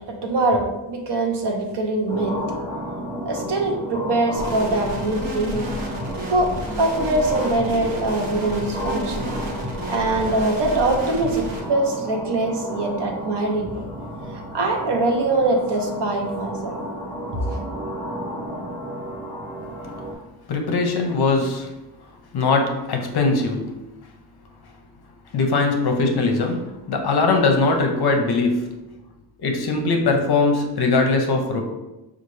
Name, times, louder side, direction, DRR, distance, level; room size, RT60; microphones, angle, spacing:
voice 1, 0.1-2.4 3.3-5.7 6.3-6.5 6.8-9.3 9.9-13.9 14.3-16.7, right 2 dB, 60° right, 2 dB, 0.8 m, -23 dB
sound 1, 2.1-20.1, equal, 10° left, 1.1 m, -33 dB
sound 2, 4.4-11.6, equal, 85° right, 1.1 m, -31 dB
voice 2, 20.5-21.7 22.3-23.7 25.3-28.7 29.4-31.6, left 3 dB, 55° left, 3 dB, 0.6 m, -21 dB
5.7 x 2.4 x 3.1 m, 1.0 s
wide cardioid pair, 175°, 47 cm